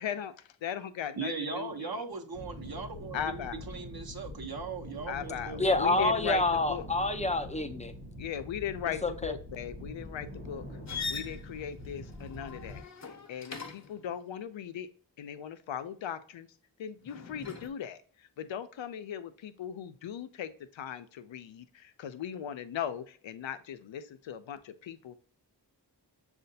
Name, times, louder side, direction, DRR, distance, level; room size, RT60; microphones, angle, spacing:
voice 1, 0.0-0.3 0.6-2.0 3.1-3.6 5.1-6.8 8.2-10.6 11.1-14.9 15.2-16.5 16.8-25.1, left 9 dB, 85° left, 0.6 m, -38 dB
voice 2, 1.2-6.1, right 4 dB, 55° right, 0.9 m, -39 dB
sound 1, 2.3-12.8, left 1 dB, 80° right, 1.1 m, -44 dB
voice 3, 5.6-7.9 9.0-9.3, left 2 dB, 15° left, 0.4 m, -27 dB
sound 2, 10.9-14.0 17.0-17.7, left 4 dB, 40° left, 0.8 m, -41 dB
6.5 x 2.5 x 2.7 m
wide cardioid pair, 60°, 44 cm